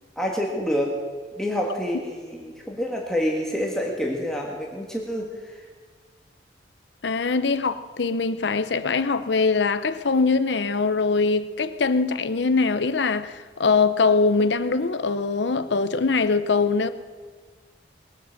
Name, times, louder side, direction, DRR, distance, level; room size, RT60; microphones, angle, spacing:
voice 1, 0.2-1.0 1.4-5.7, equal, 5° left, 1.5 m, -27 dB
voice 2, 7.0-16.9, left 4 dB, 75° left, 0.7 m, -22 dB
20.5 x 8.1 x 6.4 m
head